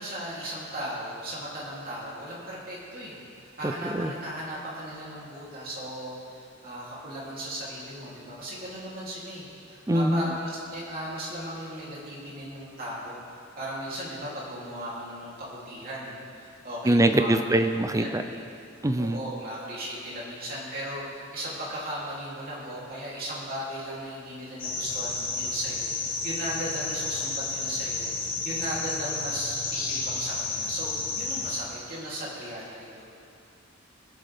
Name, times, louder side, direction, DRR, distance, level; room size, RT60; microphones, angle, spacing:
voice 1, 0.0-13.2 13.6-17.4 17.9-18.4 19.0-33.1, equal, 50° right, -7 dB, 3.2 m, -37 dB
voice 2, 9.9-10.3 16.9-18.2 18.8-19.2, right 1 dB, 15° right, 8 dB, 0.5 m, -23 dB
sound 1, 24.6-31.6, left 4 dB, 45° left, 2.3 m, -31 dB
21.5 x 7.4 x 3.6 m, 2.5 s
head